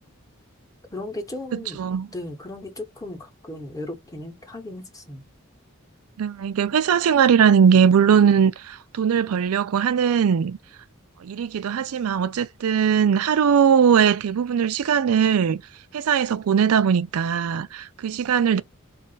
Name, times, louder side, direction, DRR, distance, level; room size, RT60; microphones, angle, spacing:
voice 1, 0.9-1.8 2.1-5.2, left 1 dB, 15° left, 0.8 m, -36 dB
voice 2, 1.5-2.1 6.2-10.6 11.2-15.6 15.9-18.6, right 7 dB, 85° right, 0.4 m, -20 dB
3.1 x 2.4 x 3.8 m
head